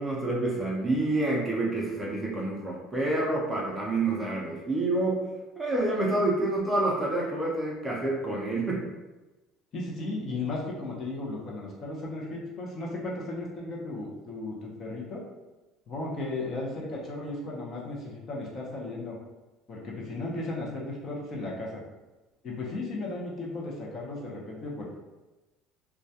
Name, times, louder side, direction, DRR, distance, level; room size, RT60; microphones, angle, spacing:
voice 1, 0.0-5.2 5.6-8.8, right 2 dB, 10° right, -4 dB, 0.4 m, -28 dB
voice 2, 9.7-15.3 15.9-19.2 19.7-21.8 22.4-24.9, left 2 dB, 35° left, -3 dB, 0.6 m, -35 dB
2.2 x 2.2 x 2.7 m, 1.1 s
cardioid pair, 150°, 0 cm